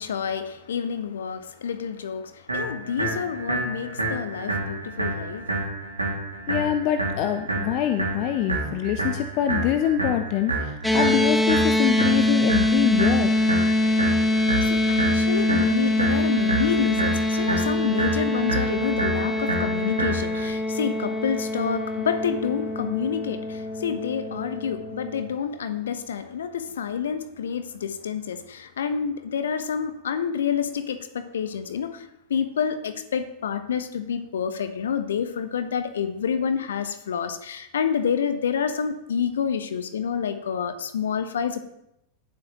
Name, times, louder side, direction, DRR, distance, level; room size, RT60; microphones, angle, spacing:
voice 1, 0.0-5.5 14.2-41.6, left 7 dB, 65° left, 11 dB, 1.0 m, -28 dB
sound 1, 2.5-20.5, right 2 dB, 80° right, 2.3 m, -29 dB
voice 2, 6.5-13.4, left 11 dB, 40° left, 8 dB, 0.7 m, -25 dB
sound 2, 10.8-25.2, left 1 dB, 5° left, 1.2 m, -24 dB
18.5 x 7.6 x 3.0 m, 0.81 s
figure-of-eight pair, 90°, 0 cm